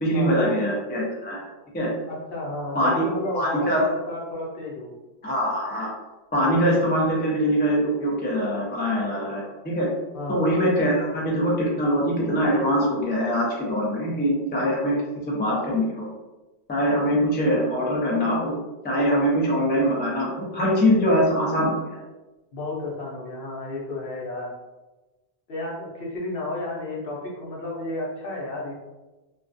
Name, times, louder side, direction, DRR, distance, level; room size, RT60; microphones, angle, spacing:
voice 1, 0.0-1.4 1.7-1.9 2.7-3.9 5.2-5.9 6.3-9.9 10.3-14.9 15.2-16.1 16.7-18.5 18.8-22.0, equal, 15° left, -4 dB, 0.3 m, -23 dB
voice 2, 2.1-4.9 10.1-10.5 22.5-24.5 25.5-28.8, left 2 dB, 65° left, -3 dB, 0.8 m, -32 dB
2.4 x 2.2 x 2.5 m, 1.1 s
omnidirectional pair, 1.0 m